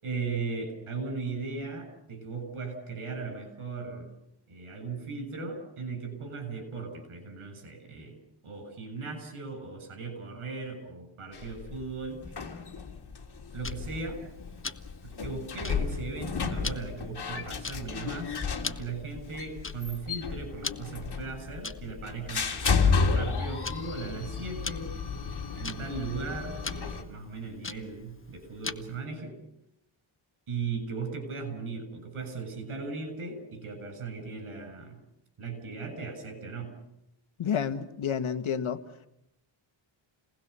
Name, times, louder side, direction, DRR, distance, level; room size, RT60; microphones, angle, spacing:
voice 1, 0.0-4.1 4.5-8.2 8.4-12.2 13.5-14.2 15.0-25.0 25.5-29.4 30.5-35.0 35.4-36.7, right 4 dB, 80° right, 7 dB, 7.9 m, -37 dB
sound 1, 11.3-27.0, left 5 dB, 50° left, 3.1 m, -32 dB
Tick-tock, 13.6-29.1, left 4 dB, 25° left, 1.2 m, -43 dB
voice 2, 37.4-38.8, left 7 dB, 70° left, 10 dB, 1.8 m, -29 dB
29.5 x 20.0 x 6.9 m, 0.82 s
wide cardioid pair, 100°, 49 cm